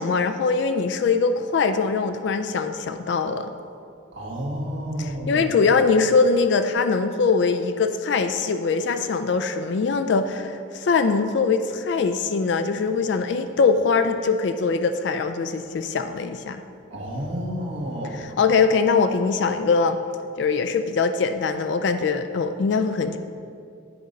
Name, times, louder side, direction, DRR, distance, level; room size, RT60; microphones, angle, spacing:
voice 1, 0.0-3.5 5.0-16.6 18.1-20.0 20.4-23.2, left 4 dB, 60° left, 8 dB, 0.3 m, -22 dB
voice 2, 4.1-5.4 16.9-18.2, equal, 75° right, -2 dB, 1.4 m, -30 dB
8.5 x 4.2 x 5.1 m, 2.4 s
head